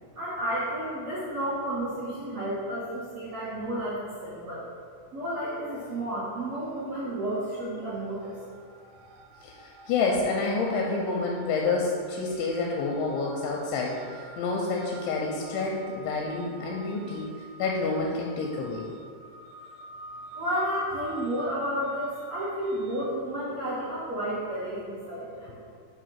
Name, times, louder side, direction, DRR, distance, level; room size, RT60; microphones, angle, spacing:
voice 1, 0.1-4.6 5.1-8.3 20.3-25.6, right 1 dB, 65° right, -14 dB, 1.6 m, -31 dB
sound 1, 5.6-6.2 6.4-23.1, right 2 dB, 85° right, 2.3 m, -48 dB
voice 2, 9.4-17.3 17.6-18.9, left 3 dB, 85° left, -1 dB, 2.7 m, -28 dB
7.8 x 2.6 x 5.7 m, 2.1 s
omnidirectional pair, 5.5 m